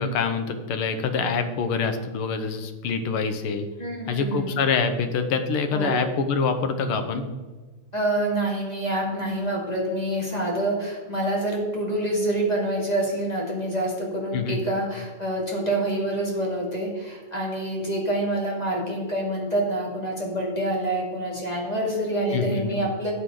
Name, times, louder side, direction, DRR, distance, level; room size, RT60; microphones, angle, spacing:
voice 1, 0.0-3.7 4.1-7.2 14.3-14.6 22.3-22.8, left 5 dB, 80° left, 7 dB, 1.8 m, -25 dB
voice 2, 3.8-4.6 5.7-6.1 7.9-23.1, right 1 dB, 20° left, -3 dB, 2.3 m, -27 dB
13.0 x 8.0 x 3.8 m, 1.3 s
omnidirectional pair, 2.4 m